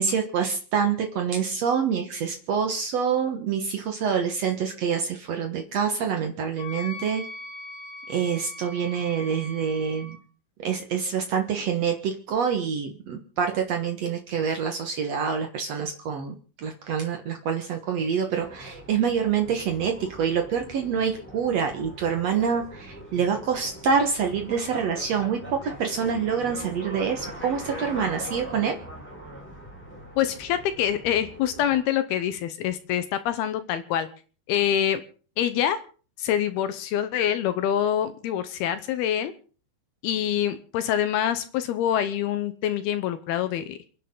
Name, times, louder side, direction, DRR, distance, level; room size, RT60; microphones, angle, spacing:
voice 1, 0.0-7.2 8.1-10.2 10.6-28.7, right 7 dB, 85° right, 4 dB, 1.4 m, -26 dB
Wind instrument woodwind instrument, 6.6-10.2, left 2 dB, 55° left, 3.9 m, -41 dB
sound 1, 18.4-31.8, equal, 5° left, 2.8 m, -41 dB
voice 2, 30.2-34.1 34.5-35.0 35.4-35.8 36.2-39.3 40.0-43.8, left 10 dB, 75° left, 11 dB, 2.5 m, -25 dB
28.5 x 10.5 x 3.8 m, 0.40 s
omnidirectional pair, 5.3 m